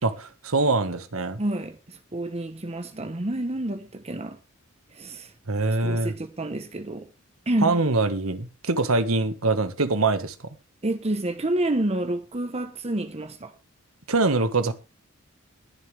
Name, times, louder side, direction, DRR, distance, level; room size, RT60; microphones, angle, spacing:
voice 1, 0.0-1.4 5.5-6.1 7.6-10.3 14.1-14.7, right 3 dB, 85° right, 1.7 m, -23 dB
voice 2, 1.4-4.4 4.9-5.3 5.8-7.1 7.5-7.8 10.8-13.5, right 1 dB, 30° right, 1.1 m, -29 dB
21.0 x 7.4 x 3.4 m
head